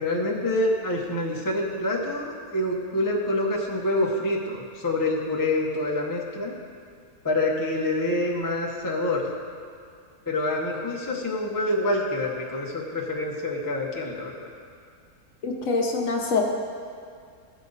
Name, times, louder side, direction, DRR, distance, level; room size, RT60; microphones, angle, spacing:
voice 1, 0.0-6.5 7.2-9.3 10.3-14.5, left 1 dB, 15° left, -2 dB, 0.8 m, -26 dB
voice 2, 15.4-16.4, left 4 dB, 65° left, 0 dB, 1.3 m, -25 dB
15.0 x 5.3 x 4.0 m, 2.3 s
omnidirectional pair, 1.6 m